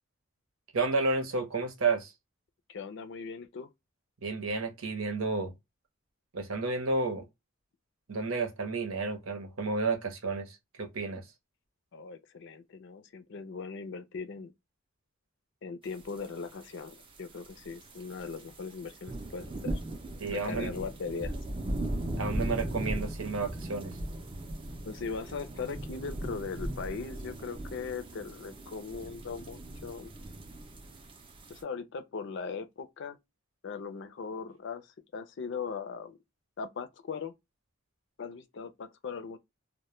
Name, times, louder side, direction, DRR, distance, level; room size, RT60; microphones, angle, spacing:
voice 1, 0.7-2.1 4.2-5.5 6.3-7.3 8.1-11.2 20.2-20.7 22.2-24.0, right 3 dB, 90° right, 0.8 m, -31 dB
voice 2, 2.7-3.7 11.9-14.5 15.6-19.8 20.3-21.3 24.9-30.1 31.5-33.2 33.6-36.2 36.6-37.3 38.2-39.4, left 5 dB, 60° left, 0.4 m, -39 dB
sound 1, 16.1-16.3 16.5-31.6, right 1 dB, 25° right, 0.4 m, -38 dB
2.1 x 2.1 x 2.9 m
head